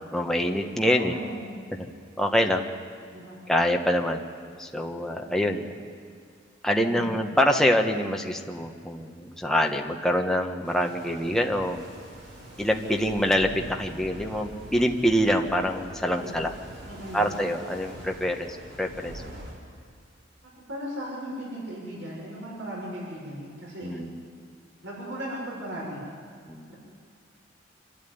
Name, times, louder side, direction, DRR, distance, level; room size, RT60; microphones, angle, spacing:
voice 1, 0.1-1.1 2.2-2.7 3.5-4.2 4.6-5.7 6.6-11.8 12.6-16.5 17.1-18.5 18.8-19.2 23.8-24.2 26.5-26.7, equal, 5° left, 2 dB, 1.3 m, -25 dB
voice 2, 0.8-1.5 3.1-3.4 5.2-5.5 6.8-7.1 16.1-16.4 16.9-17.3 20.7-24.0 24.8-26.0 26.7-26.8, equal, 80° right, -4 dB, 6.4 m, -37 dB
sound 1, 10.6-19.5, equal, 65° right, 5.9 m, -44 dB
26.5 x 12.5 x 9.5 m, 2.3 s
head